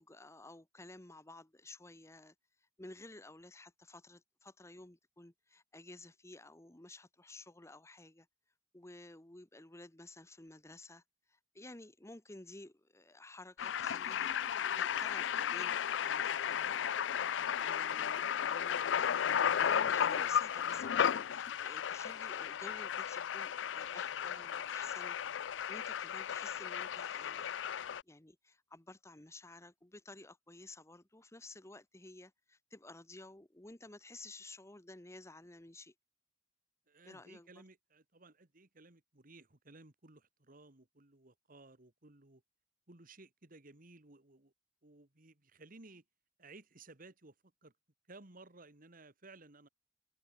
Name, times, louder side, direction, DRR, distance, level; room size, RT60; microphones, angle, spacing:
voice 1, 0.0-2.3 2.8-8.3 8.7-11.0 11.3-17.0 17.6-25.2 25.4-27.6 28.0-35.9 37.0-37.6, left 2 dB, 15° left, 1.2 m, -53 dB
sound 1, 13.6-28.0, left 8 dB, 75° left, 0.4 m, -34 dB
voice 2, 36.9-42.4 42.9-44.5 44.8-46.0 46.4-47.7 48.1-49.7, right 2 dB, 50° right, 2.1 m, -58 dB
head